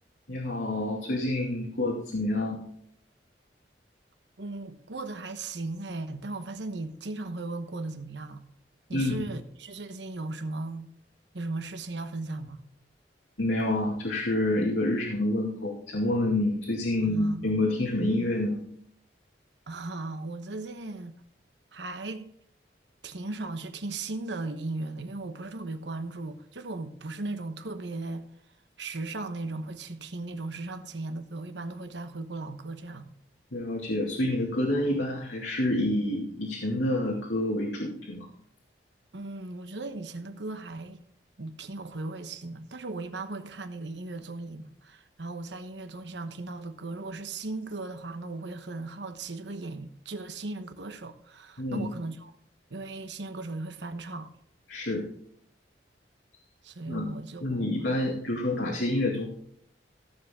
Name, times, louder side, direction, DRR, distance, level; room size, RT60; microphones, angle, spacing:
voice 1, 0.3-2.6 8.9-9.2 13.4-18.6 33.5-38.3 51.6-51.9 54.7-55.0 56.9-57.1 57.4-59.3, left 1 dB, 85° left, 2.3 m, -28 dB
voice 2, 4.4-8.4 8.9-10.9 11.3-12.6 17.0-17.6 19.7-21.1 21.7-22.3 23.0-28.3 28.8-33.1 39.1-41.0 41.4-52.3 52.7-54.3 56.6-57.9, right 2 dB, 80° right, 1.1 m, -37 dB
16.0 x 7.3 x 3.6 m
head